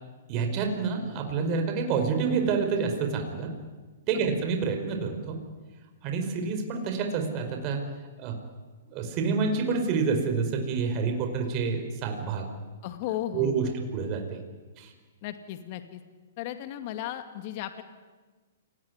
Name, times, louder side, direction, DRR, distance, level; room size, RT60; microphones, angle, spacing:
voice 1, 0.3-3.5 4.1-5.4 6.0-7.8 8.2-8.4 8.9-12.5 13.3-14.4 14.8-14.9, right 5 dB, 35° right, 5 dB, 4.9 m, -28 dB
voice 2, 12.8-13.8 15.2-16.0 16.4-17.8, left 12 dB, 45° left, 8 dB, 2.2 m, -35 dB
28.5 x 19.5 x 9.7 m, 1.3 s
hypercardioid pair, 130°, 0 cm